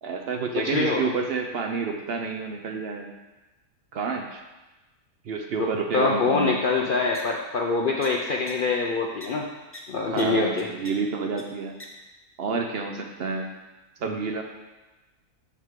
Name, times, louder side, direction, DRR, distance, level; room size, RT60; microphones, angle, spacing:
voice 1, 0.0-3.1 3.9-4.4 5.2-6.6 10.1-11.8 12.4-13.5 14.0-14.4, right 4 dB, 60° right, 4 dB, 0.7 m, -29 dB
voice 2, 0.6-1.0 5.6-5.7 5.9-9.5 9.9-10.7, left 4 dB, 65° left, 0 dB, 0.5 m, -24 dB
sound 1, 7.1-7.2 8.0-8.1 8.5-8.6 9.2-9.3 9.7-9.8 10.2-10.3 10.6-10.9 11.4-11.5 11.8-11.9, left 1 dB, 15° left, 0.5 m, -41 dB
6.9 x 6.4 x 3.6 m, 1.1 s
omnidirectional pair, 1.6 m